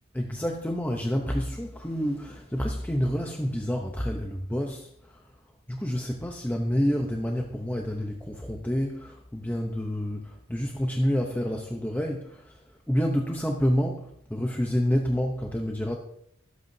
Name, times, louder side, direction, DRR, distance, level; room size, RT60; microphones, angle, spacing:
voice 1, 0.1-5.2 5.7-15.9, equal, 10° left, 1 dB, 0.8 m, -28 dB
24.0 x 8.3 x 2.7 m, 0.71 s
head